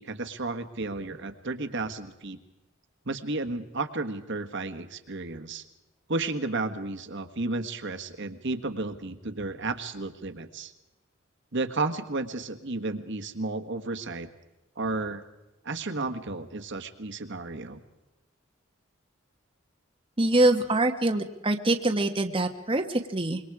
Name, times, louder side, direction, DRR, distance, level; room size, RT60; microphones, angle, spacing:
voice 1, 0.0-2.4 3.0-5.6 6.1-10.7 11.5-14.3 14.8-15.2 15.6-17.8, right 3 dB, 60° right, 7 dB, 1.5 m, -32 dB
voice 2, 20.2-23.4, right 2 dB, 25° right, 4 dB, 1.3 m, -24 dB
26.0 x 23.0 x 4.9 m, 1.0 s
head